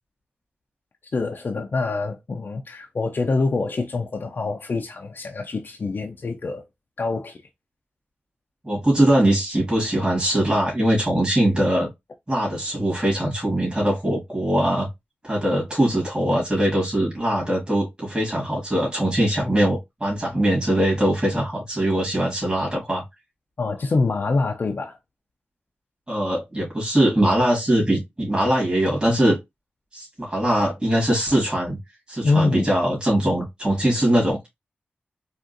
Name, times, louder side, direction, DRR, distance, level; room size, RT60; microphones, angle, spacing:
voice 1, 1.1-6.6 7.0-7.4 23.6-25.0 32.2-32.7, left 3 dB, 55° left, 0.4 m, -25 dB
voice 2, 8.6-11.9 12.3-14.9 15.2-23.0 26.1-29.4 29.9-31.8 32.1-34.5, right 1 dB, 25° right, 1.8 m, -21 dB
3.6 x 2.4 x 2.5 m
cardioid pair, 45°, 4 cm